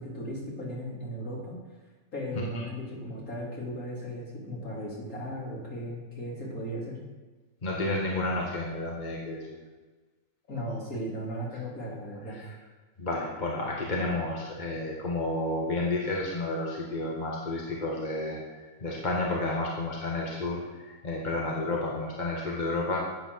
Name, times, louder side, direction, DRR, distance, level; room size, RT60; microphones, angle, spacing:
voice 1, 0.0-1.6 2.1-7.0 10.5-12.4, equal, 45° left, -4 dB, 3.8 m, -36 dB
voice 2, 7.6-9.4 13.0-23.0, left 2 dB, 25° left, -3 dB, 1.5 m, -31 dB
10.5 x 8.1 x 6.3 m, 1.3 s
omnidirectional pair, 2.1 m